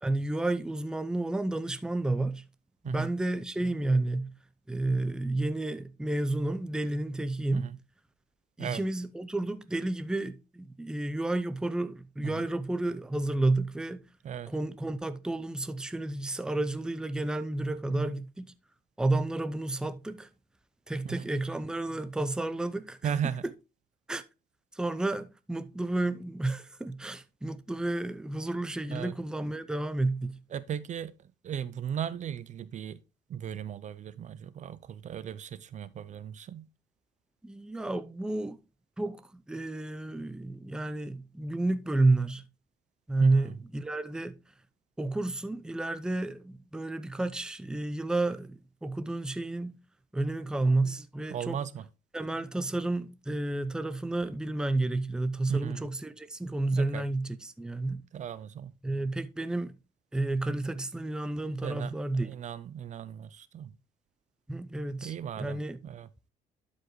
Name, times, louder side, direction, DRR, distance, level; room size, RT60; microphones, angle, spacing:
voice 1, 0.0-2.4 2.8-4.3 4.7-7.7 8.6-14.1 14.5-18.5 19.0-20.3 20.9-23.1 24.1-24.2 24.7-30.4 37.4-38.6 39.0-42.4 43.1-44.4 45.0-49.8 50.1-51.6 52.1-58.0 58.8-59.7 60.1-62.3 64.5-65.8, right 2 dB, 5° right, 0.6 m, -31 dB
voice 2, 23.0-23.4 28.9-29.1 30.5-33.0 33.3-36.7 43.2-43.5 51.3-51.9 55.5-55.9 56.7-57.1 58.1-58.7 61.6-63.7 65.0-66.1, right 8 dB, 45° right, 0.5 m, -37 dB
12.0 x 5.2 x 3.1 m
cardioid pair, 110°, 17 cm